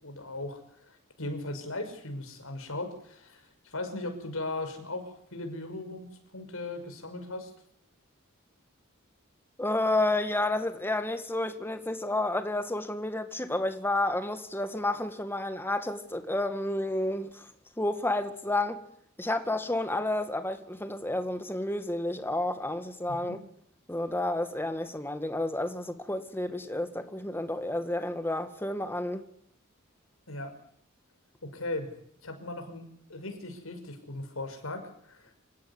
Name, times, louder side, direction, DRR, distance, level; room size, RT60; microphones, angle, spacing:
voice 1, 0.0-7.5 23.1-23.4 30.3-30.6 31.5-31.9 32.2-35.3, left 2 dB, 85° left, 5.7 m, -38 dB
voice 2, 9.6-17.5 17.8-18.8 19.2-23.4 23.9-29.3, left 2 dB, 10° left, 1.9 m, -30 dB
26.5 x 16.5 x 9.8 m
head